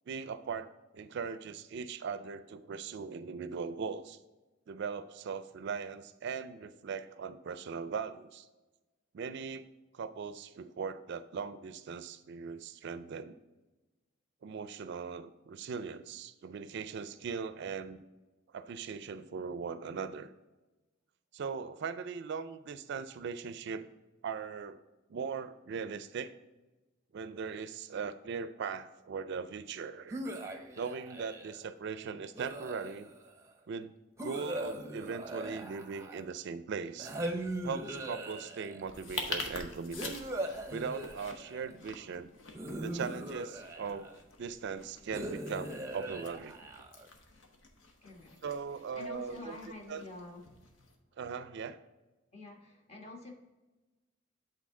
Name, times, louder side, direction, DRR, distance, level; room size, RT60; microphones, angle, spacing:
voice 1, 0.1-4.2 4.7-8.5 9.1-9.7 9.9-13.4 14.4-18.0 18.5-20.3 21.3-23.9 24.2-24.8 25.1-26.3 27.1-30.2 30.8-33.1 33.7-33.9 34.2-37.1 37.6-40.1 40.7-42.3 42.8-44.1 44.4-46.6 48.4-49.6 49.9-50.0 51.2-51.8, right 5 dB, 60° right, 12 dB, 0.4 m, -39 dB
sound 1, 30.1-31.6 32.3-33.3 34.2-36.4 37.0-38.8 40.0-41.7 42.5-44.2 45.1-47.1, right 1 dB, 15° right, 0.7 m, -40 dB
sound 2, 38.8-50.9, left 3 dB, 90° left, 0.9 m, -46 dB
voice 2, 48.0-48.4 48.9-50.4 52.3-53.3, left 2 dB, 35° left, 1 dB, 1.3 m, -47 dB
8.4 x 3.9 x 3.7 m, 1.1 s
head